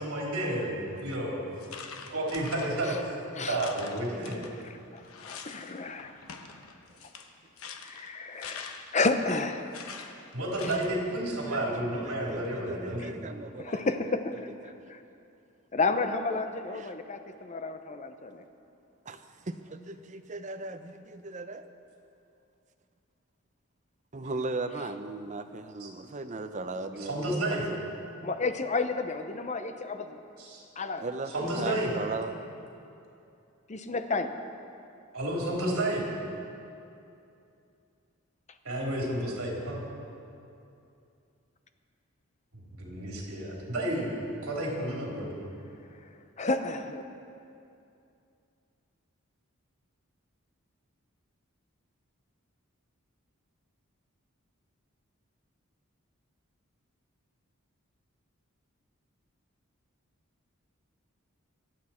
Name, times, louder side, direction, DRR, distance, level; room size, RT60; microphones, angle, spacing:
voice 1, 0.0-1.4 2.1-4.4 10.3-13.1 25.8-25.9 27.0-27.6 30.4-30.6 31.3-31.9 35.1-36.1 38.6-39.8 42.7-44.1 44.4-45.3, right 1 dB, 80° right, 3.6 m, -31 dB
voice 2, 0.6-1.0 3.6-3.7 4.1-4.3 7.6-7.7 11.5-14.2 14.6-14.8 16.8-16.9 19.1-21.7 24.1-27.6 31.0-32.3, right 3 dB, 35° right, 0.7 m, -38 dB
sound 1, 1.0-1.2 1.6-3.1 3.5-5.7 6.0-9.1 9.7-11.0, left 5 dB, 85° left, 1.0 m, -45 dB
voice 3, 4.6-6.2 7.8-9.9 10.6-10.8 13.0-13.1 13.6-14.5 14.9-15.0 15.7-18.4 28.2-30.2 30.8-31.0 31.6-31.8 33.7-34.3 46.4-47.0, left 3 dB, 35° left, 0.7 m, -31 dB
24.5 x 8.6 x 4.4 m
head